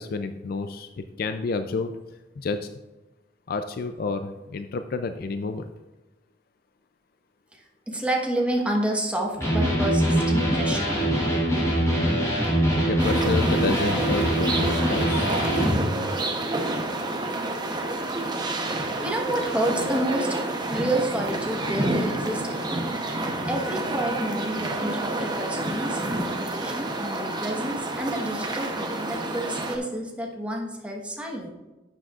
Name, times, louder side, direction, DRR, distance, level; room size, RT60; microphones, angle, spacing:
voice 1, 0.0-1.9 2.4-2.7 3.5-5.7 12.9-15.3, left 3 dB, 55° left, 8 dB, 0.4 m, -30 dB
voice 2, 7.5-10.9 18.7-20.3 20.7-22.9 23.5-31.5, right 1 dB, 5° right, -1 dB, 1.2 m, -29 dB
Electric guitar, 9.4-15.8, right 1 dB, 20° left, 3.0 m, -23 dB
sound 1, 13.0-29.8, right 2 dB, 25° right, 0.9 m, -29 dB
11.5 x 7.6 x 2.4 m, 1.1 s
head